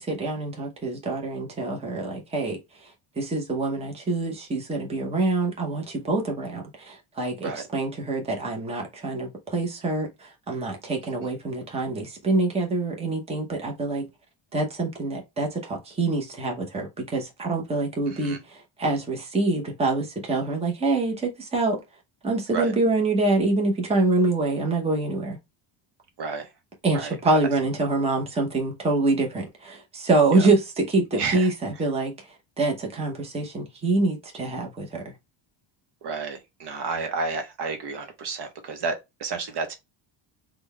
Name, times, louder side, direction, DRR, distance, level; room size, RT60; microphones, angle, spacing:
voice 1, 0.0-14.1 14.5-21.8 22.2-25.4 26.8-35.1, right 3 dB, 10° right, 0.8 m, -26 dB
voice 2, 26.2-26.5 26.9-27.4 30.3-30.5 31.2-31.5 36.0-39.7, right 4 dB, 55° right, 0.9 m, -31 dB
3.7 x 2.3 x 3.2 m
cardioid pair, 165°, 50 cm